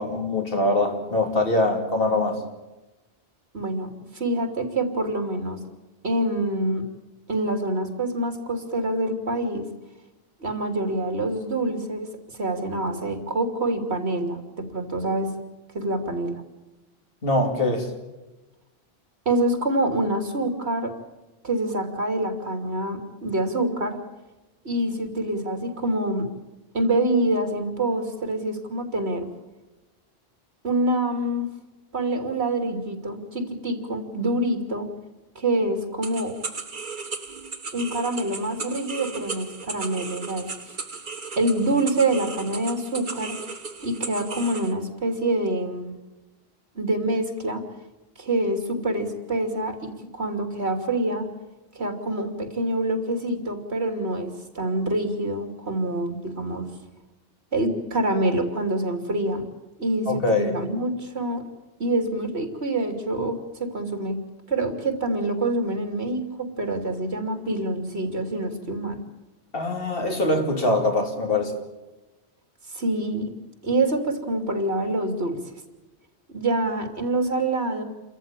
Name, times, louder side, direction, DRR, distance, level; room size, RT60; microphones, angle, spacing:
voice 1, 0.0-2.4 17.2-17.9 60.1-60.5 69.5-71.6, left 2 dB, 60° left, 3 dB, 3.0 m, -23 dB
voice 2, 3.5-5.6 6.0-6.8 7.3-9.7 10.4-15.3 15.7-16.4 19.2-20.9 21.4-24.0 24.6-26.3 26.7-29.3 30.6-31.5 31.9-34.9 35.3-36.3 37.7-40.5 41.4-43.4 43.8-45.9 46.7-47.6 48.2-51.3 51.7-56.7 57.5-59.4 59.8-61.4 61.8-64.2 64.5-69.0 72.7-73.3 73.6-75.4 76.3-77.8, right 1 dB, 80° right, 6 dB, 3.1 m, -26 dB
sound 1, 36.0-44.7, right 4 dB, 50° right, 1.5 m, -36 dB
28.5 x 14.5 x 9.0 m, 1.1 s
omnidirectional pair, 1.1 m